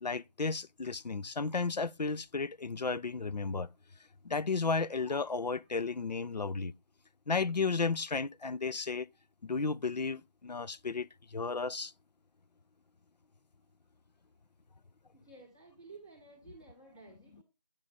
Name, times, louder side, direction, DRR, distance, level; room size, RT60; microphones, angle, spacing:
voice 1, 0.0-3.7 4.2-6.7 7.3-9.1 9.4-11.9, left 4 dB, 85° left, 0.5 m, -33 dB
voice 2, 15.1-17.4, right 3 dB, 5° left, 0.7 m, -54 dB
8.9 x 4.8 x 3.9 m
figure-of-eight pair, 170°, 21 cm